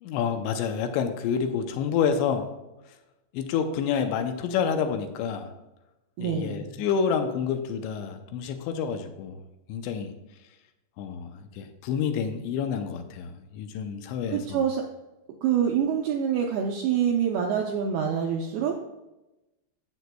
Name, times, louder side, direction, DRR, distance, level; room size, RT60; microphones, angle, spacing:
voice 1, 0.0-2.5 3.3-5.5 6.2-9.4 9.7-10.1 11.0-14.7, left 7 dB, 80° left, 6 dB, 2.8 m, -28 dB
voice 2, 6.2-6.7 14.3-14.8 15.4-18.7, right 8 dB, 80° right, 1 dB, 2.2 m, -26 dB
11.5 x 7.8 x 2.2 m, 0.99 s
omnidirectional pair, 5.2 m